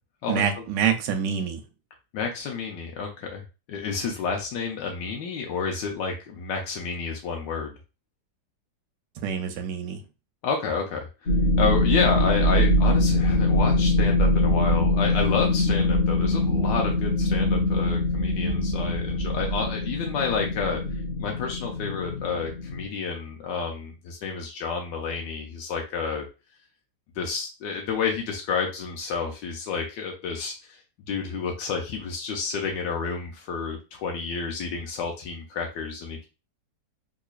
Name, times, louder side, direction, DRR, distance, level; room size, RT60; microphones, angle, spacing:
voice 1, 0.3-1.6 9.2-10.0, right 7 dB, 85° right, 6 dB, 1.3 m, -26 dB
voice 2, 2.1-3.4 3.7-7.7 10.4-11.3 11.6-26.3 27.2-30.8 31.1-36.3, left 5 dB, 85° left, 1 dB, 1.4 m, -30 dB
sound 1, 11.3-22.8, left 1 dB, 40° left, 1.0 m, -23 dB
3.8 x 2.9 x 2.4 m, 0.29 s
omnidirectional pair, 1.9 m